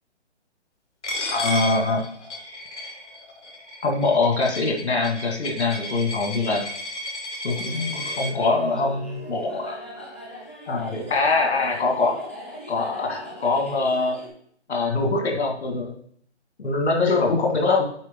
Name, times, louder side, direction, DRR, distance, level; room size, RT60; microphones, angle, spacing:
Coin (dropping), 1.0-8.3, left 1 dB, 85° left, 2.0 m, -33 dB
voice 1, 1.3-2.0 3.8-6.6 7.4-9.8 10.7-12.2 12.7-14.2 14.7-15.9 16.6-17.9, left 3 dB, 70° left, 1 dB, 2.0 m, -23 dB
sound 1, 7.6-14.3, equal, 10° left, 0.5 m, -39 dB
8.3 x 3.4 x 3.7 m, 0.62 s
hypercardioid pair, 160°, 34 cm